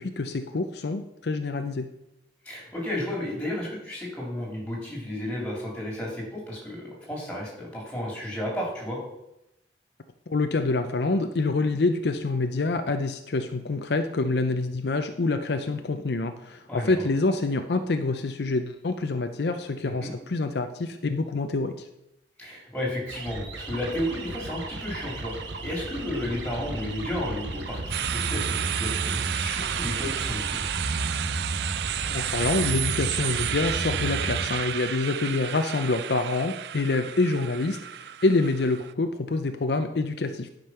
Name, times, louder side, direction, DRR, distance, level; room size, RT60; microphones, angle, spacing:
voice 1, 0.0-1.9 10.3-21.9 32.1-40.5, left 3 dB, 65° left, 7 dB, 0.6 m, -26 dB
voice 2, 2.4-9.0 16.7-16.9 19.8-20.1 22.4-25.3 25.6-30.6, left 1 dB, 5° left, -4 dB, 3.2 m, -33 dB
sound 1, 23.1-34.5, right 2 dB, 75° right, 1.2 m, -33 dB
sound 2, 27.9-38.9, right 11 dB, 60° right, 0.3 m, -31 dB
11.0 x 5.2 x 5.7 m, 0.87 s
head